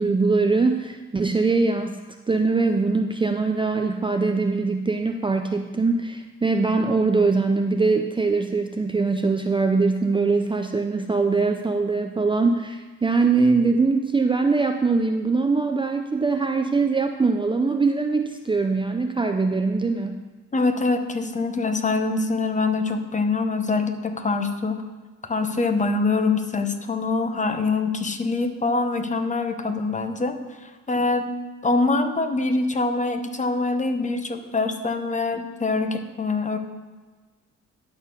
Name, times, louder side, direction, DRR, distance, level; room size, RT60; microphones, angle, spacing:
voice 1, 0.0-2.0 2.3-20.2, right 4 dB, 15° right, 5 dB, 0.5 m, -22 dB
voice 2, 20.5-24.8 25.2-31.3 31.6-36.6, left 3 dB, 25° left, 7 dB, 0.9 m, -24 dB
10.5 x 4.3 x 6.7 m, 1.3 s
cardioid pair, 90°, 30 cm